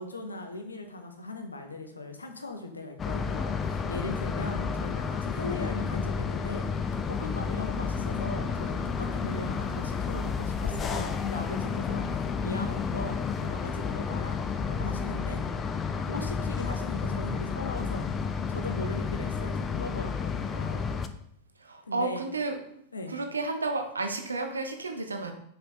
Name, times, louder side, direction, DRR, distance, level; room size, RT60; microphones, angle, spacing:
voice 1, 0.0-6.7 7.1-14.4 14.7-15.4 16.1-20.9 21.9-22.2 22.9-23.2, left 2 dB, 80° left, 5 dB, 0.8 m, -39 dB
sound 1, 3.0-21.1, left 5 dB, 20° left, 0.4 m, -31 dB
voice 2, 21.6-22.6 23.1-25.3, right 3 dB, 75° right, 5 dB, 0.7 m, -32 dB
5.1 x 4.8 x 3.9 m, 0.72 s
figure-of-eight pair, 90°, 0 cm